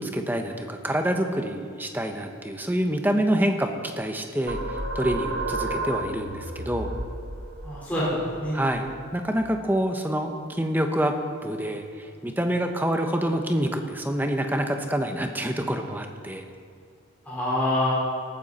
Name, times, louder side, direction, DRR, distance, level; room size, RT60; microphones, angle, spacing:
voice 1, 0.0-6.9 8.5-8.9 9.1-11.1 11.4-16.4, right 1 dB, 10° right, 4 dB, 1.0 m, -27 dB
sound 1, 4.5-9.7, right 2 dB, 65° right, 1.5 m, -33 dB
voice 2, 7.6-8.5 17.2-17.9, left 1 dB, 10° left, -9 dB, 4.4 m, -26 dB
18.5 x 14.0 x 4.3 m, 2.3 s
head